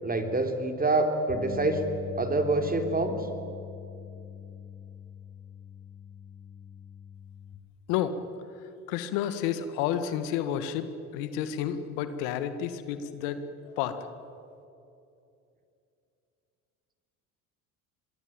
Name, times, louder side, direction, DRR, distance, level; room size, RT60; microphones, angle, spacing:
voice 1, 0.0-1.8 2.2-3.1, right 2 dB, 20° right, 5 dB, 3.7 m, -26 dB
Bass guitar, 1.3-7.5, left 6 dB, 50° left, 6.9 m, -42 dB
voice 2, 8.9-13.4 13.8-14.0, left 10 dB, 75° left, 10 dB, 1.8 m, -30 dB
24.5 x 21.5 x 9.0 m, 2.6 s
hypercardioid pair, 75°, 42 cm